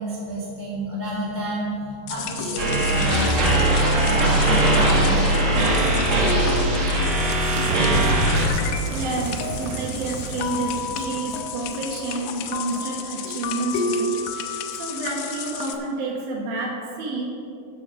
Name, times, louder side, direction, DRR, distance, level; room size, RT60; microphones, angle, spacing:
voice 1, 0.0-5.9, equal, 30° left, -6 dB, 1.5 m, -30 dB
sound 1, 2.1-15.8, left 5 dB, 80° left, 2.7 m, -31 dB
sound 2, 2.6-8.5, right 1 dB, 50° right, 2.4 m, -20 dB
Explosion Power Central, 6.5-12.6, right 6 dB, 85° right, 2.1 m, -32 dB
voice 2, 8.9-14.2 14.7-17.3, right 3 dB, 65° right, -1 dB, 2.8 m, -29 dB
14.0 x 6.9 x 5.2 m, 2.6 s
omnidirectional pair, 4.8 m